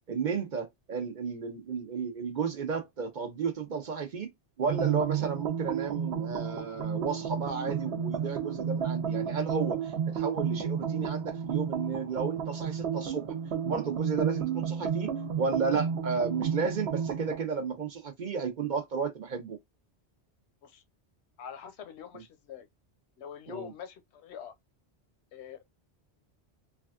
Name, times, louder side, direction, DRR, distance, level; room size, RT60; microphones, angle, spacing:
voice 1, 0.1-4.3 4.6-13.3 13.6-19.6 23.5-23.7, right 5 dB, 50° right, 0.7 m, -33 dB
sound 1, 4.7-17.4, right 7 dB, 80° right, 0.9 m, -32 dB
voice 2, 21.4-22.7 23.2-24.6 25.3-25.8, left 8 dB, 85° left, 0.9 m, -44 dB
3.3 x 2.3 x 2.3 m
omnidirectional pair, 1.1 m